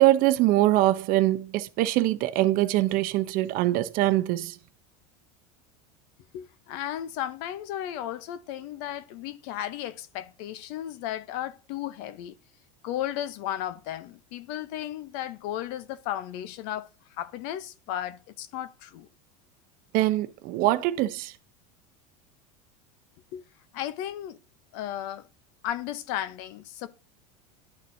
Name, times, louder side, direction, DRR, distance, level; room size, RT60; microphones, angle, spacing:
voice 1, 0.0-4.6 19.9-21.3, right 15 dB, 50° right, 0.7 m, -23 dB
voice 2, 6.3-12.3 12.8-19.1 23.3-23.4 23.7-24.4 24.7-25.3 25.6-26.9, left 12 dB, 60° left, 0.8 m, -34 dB
11.5 x 4.1 x 2.7 m
supercardioid pair, 125°, 18 cm